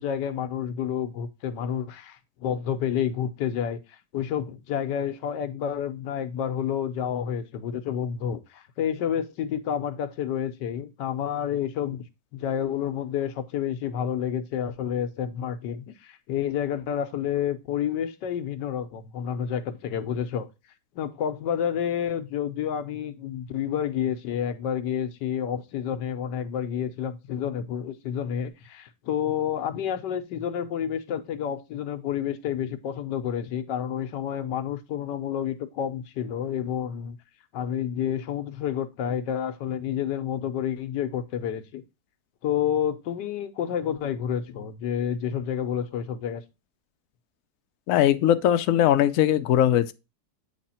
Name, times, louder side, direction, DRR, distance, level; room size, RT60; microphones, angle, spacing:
voice 1, 0.0-12.0 12.3-20.5 20.9-37.2 37.5-41.8 42.4-46.4, left 9 dB, 90° left, 1.4 m, -29 dB
voice 2, 47.9-49.9, left 11 dB, 65° left, 0.8 m, -20 dB
8.4 x 3.4 x 4.2 m
omnidirectional pair, 1.8 m